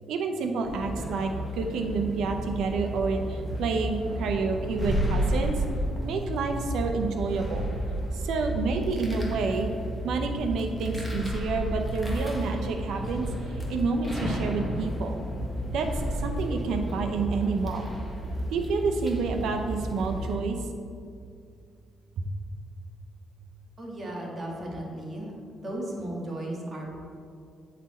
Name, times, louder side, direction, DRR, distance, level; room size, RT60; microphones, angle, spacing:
voice 1, 0.1-5.5 6.0-7.7 8.1-9.7 10.0-13.3 13.7-15.2 15.7-15.9 16.2-17.9 18.5-20.6 22.2-22.3, right 4 dB, 80° right, 5 dB, 0.7 m, -29 dB
sound 1, 0.6-20.4, equal, 10° left, 1.3 m, -32 dB
voice 2, 23.8-25.3 25.6-26.9, right 1 dB, 30° right, -2 dB, 1.7 m, -35 dB
9.4 x 4.2 x 4.3 m, 2.4 s
cardioid pair, 90°, 0 cm